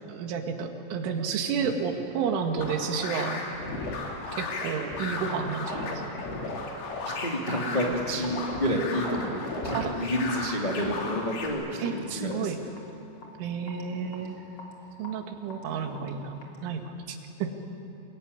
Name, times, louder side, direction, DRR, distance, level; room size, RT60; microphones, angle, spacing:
voice 1, 0.1-3.5 4.4-6.0 9.7-10.0 11.8-12.6 13.4-14.4 15.0-17.5, right 6 dB, 75° right, 5 dB, 4.2 m, -31 dB
sound 1, 2.6-11.5, left 3 dB, 75° left, 5.8 m, -34 dB
sound 2, 3.2-16.9, left 1 dB, 30° left, 3.5 m, -48 dB
voice 2, 7.0-12.7, equal, 55° left, -1 dB, 0.5 m, -30 dB
28.0 x 21.5 x 9.7 m, 2.9 s
omnidirectional pair, 5.7 m